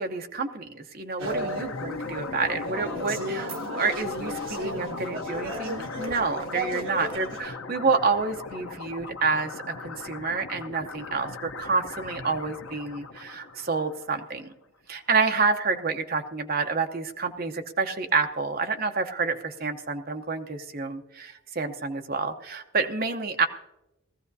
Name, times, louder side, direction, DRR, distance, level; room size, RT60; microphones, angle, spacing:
voice 1, 0.0-14.5 14.9-23.5, right 4 dB, 45° right, 5 dB, 0.8 m, -28 dB
sound 1, 1.2-14.4, left 3 dB, 70° left, 0.8 m, -37 dB
sound 2, 1.2-7.4, right 1 dB, 65° right, 1.3 m, -35 dB
19.0 x 14.5 x 2.7 m, 0.94 s
head